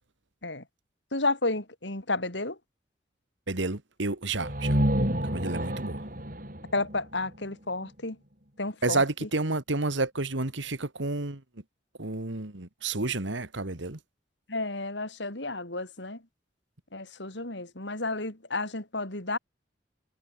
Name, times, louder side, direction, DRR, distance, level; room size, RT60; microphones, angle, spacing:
voice 1, 1.1-2.6 6.7-8.2 8.6-9.0 14.5-16.2 16.9-19.4, left 2 dB, 70° left, 4.3 m, -31 dB
voice 2, 3.5-4.8 5.2-6.0 8.8-11.4 12.0-14.0, right 3 dB, 75° right, 2.1 m, -30 dB
sound 1, 4.4-8.1, equal, 45° right, 7.1 m, -30 dB
head